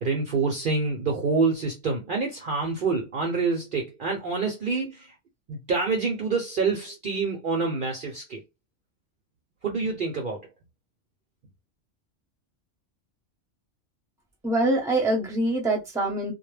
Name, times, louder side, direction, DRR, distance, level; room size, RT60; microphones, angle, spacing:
voice 1, 0.0-5.1 5.5-8.4 9.6-10.5, right 4 dB, 55° right, 0.7 m, -27 dB
voice 2, 14.4-16.3, right 1 dB, 5° right, 0.7 m, -24 dB
2.2 x 2.1 x 3.1 m
omnidirectional pair, 1.3 m